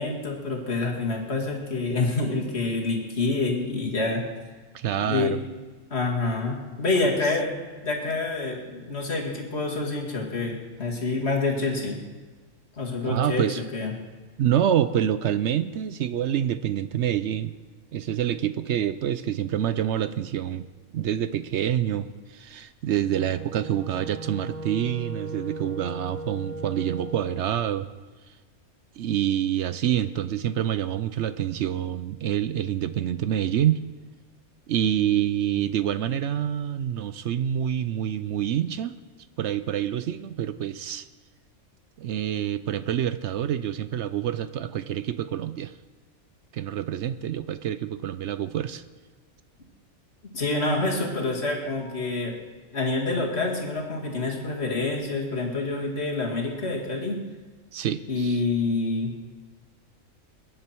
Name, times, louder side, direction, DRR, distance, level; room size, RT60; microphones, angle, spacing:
voice 1, 0.0-4.2 4.9-5.3 5.9-7.5 7.8-12.0 12.8-13.9 50.3-52.4 52.7-57.2 58.1-59.2, left 3 dB, 50° left, -1 dB, 2.5 m, -27 dB
voice 2, 4.7-5.4 13.0-13.6 14.4-17.5 17.9-20.7 20.9-27.9 29.0-33.8 34.7-39.0 39.4-41.1 42.0-45.7 46.5-48.8 57.7-58.4, right 10 dB, 65° right, 13 dB, 0.7 m, -27 dB
Wind instrument woodwind instrument, 23.0-27.5, right 2 dB, 80° right, 1.4 m, -37 dB
22.0 x 10.5 x 4.5 m, 1.4 s
omnidirectional pair, 1.5 m